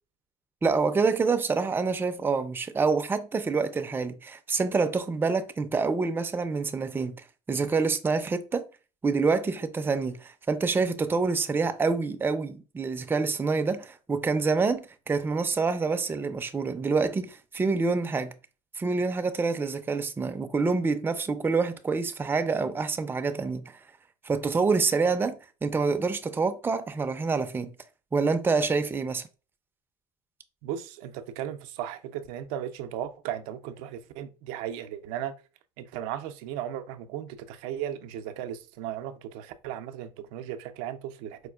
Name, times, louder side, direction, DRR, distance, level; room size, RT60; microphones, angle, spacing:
voice 1, 0.6-7.1 7.5-8.6 9.0-18.3 18.8-23.8 24.2-27.7 28.1-29.2, right 4 dB, 15° right, 0.4 m, -27 dB
voice 2, 30.6-35.3 35.8-41.5, right 10 dB, 80° right, 0.4 m, -36 dB
4.5 x 2.3 x 2.2 m
supercardioid pair, 95°, 17 cm